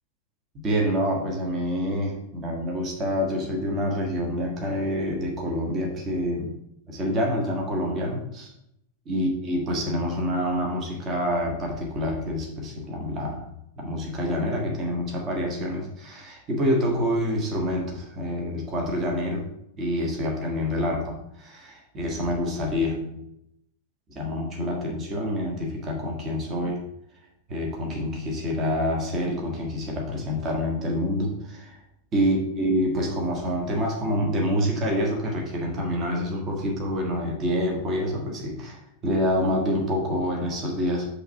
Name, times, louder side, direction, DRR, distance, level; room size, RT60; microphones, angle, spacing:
voice 1, 0.6-6.5 6.9-8.5 9.0-13.4 13.8-19.4 19.8-23.1 24.1-26.8 27.5-31.8 32.1-41.1, equal, 30° right, 0 dB, 1.4 m, -27 dB
5.5 x 3.3 x 5.6 m, 0.77 s
figure-of-eight pair, 90°, 0 cm